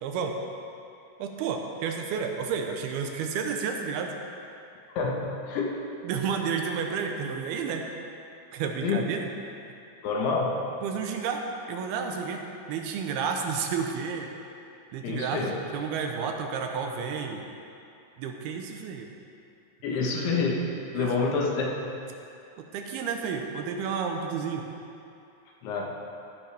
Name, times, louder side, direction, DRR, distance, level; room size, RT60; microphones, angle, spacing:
voice 1, 0.0-0.4 1.2-4.1 6.0-7.9 8.5-9.3 10.8-11.4 11.7-14.3 14.9-17.4 18.2-19.1 19.9-20.0 20.9-21.3 22.6-24.7, right 6 dB, 80° right, 3 dB, 2.8 m, -31 dB
voice 2, 5.0-5.7 8.8-9.0 10.0-10.5 15.0-15.5 19.8-20.6 20.9-21.7 25.6-25.9, left 4 dB, 85° left, -2 dB, 3.4 m, -27 dB
14.5 x 11.0 x 3.5 m, 2.7 s
omnidirectional pair, 4.5 m